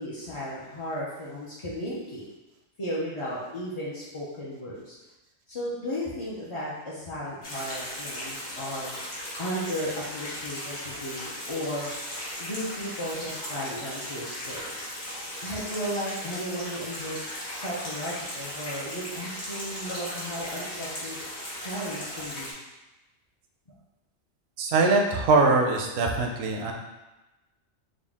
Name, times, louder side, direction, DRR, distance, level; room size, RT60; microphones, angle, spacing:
voice 1, 0.0-2.3 2.8-5.0 5.5-8.9 9.4-11.9 12.4-14.7 15.4-17.2 17.6-21.2 21.6-22.5, equal, 40° left, -8 dB, 0.4 m, -35 dB
sound 1, 7.4-22.5, left 1 dB, 70° left, 1.4 m, -37 dB
voice 2, 24.6-26.7, right 3 dB, 65° right, 2 dB, 0.7 m, -22 dB
3.8 x 2.2 x 3.5 m, 1.0 s
omnidirectional pair, 1.3 m